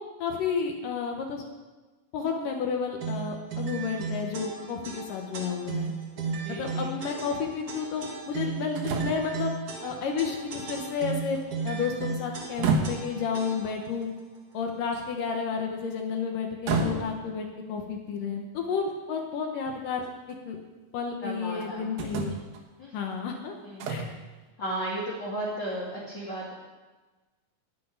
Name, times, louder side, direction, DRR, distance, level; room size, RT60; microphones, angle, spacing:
voice 1, 0.2-1.4 2.1-5.9 6.6-9.5 9.8-11.4 11.6-14.1 14.5-20.6 20.9-22.4 22.9-23.6 23.9-24.1, left 6 dB, 70° left, 2 dB, 2.8 m, -31 dB
sound 1, 3.0-13.9, right 4 dB, 50° right, 1.0 m, -35 dB
sound 2, 5.8-5.9 8.8-9.3 9.9-10.0 10.4-11.4 12.4-13.2 14.9-15.3 16.7-17.3 18.9-19.0 19.7-20.4 21.6-21.7 22.0-22.6 23.8-24.2, right 4 dB, 90° right, 3.1 m, -30 dB
voice 2, 6.2-7.0 21.2-22.0 22.8-22.9 23.6-24.2 24.6-26.5, right 1 dB, 35° left, -8 dB, 3.0 m, -35 dB
10.0 x 8.2 x 9.8 m, 1.2 s
omnidirectional pair, 4.1 m